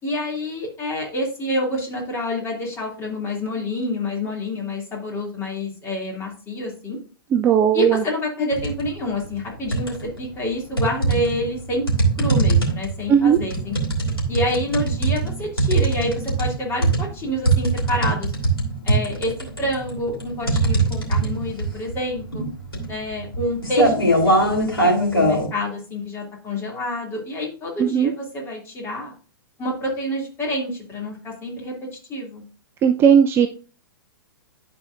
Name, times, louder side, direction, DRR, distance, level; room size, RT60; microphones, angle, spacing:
voice 1, 0.0-7.0 7.7-11.8 12.2-13.8 14.3-18.3 18.8-19.3 19.6-22.4 22.9-29.1 29.6-31.7 32.1-32.4, left 1 dB, 20° left, -1 dB, 2.7 m, -27 dB
voice 2, 7.3-8.0 13.1-13.4 27.8-28.1 32.8-33.5, right 8 dB, 20° right, 8 dB, 0.4 m, -16 dB
sound 1, 8.5-8.9 9.3-10.2 10.8-25.5, right 2 dB, 85° left, 2.8 m, -21 dB
12.0 x 4.4 x 2.5 m, 0.38 s
figure-of-eight pair, 110°, 12 cm